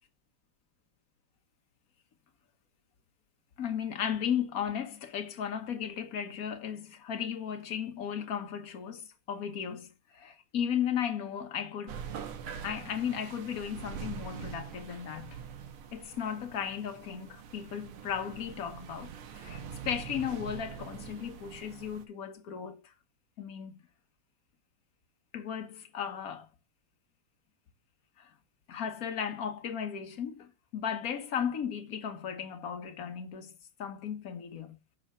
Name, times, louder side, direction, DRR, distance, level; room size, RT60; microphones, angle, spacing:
voice 1, 3.6-12.0 12.6-15.4 15.9-22.9 23.4-23.8 25.3-26.5 28.2-28.3 28.7-33.5 33.8-34.7, left 8 dB, 50° left, 1.2 m, -35 dB
sound 1, 11.9-22.0, right 7 dB, 90° right, 1.9 m, -44 dB
6.3 x 5.5 x 5.4 m
omnidirectional pair, 2.3 m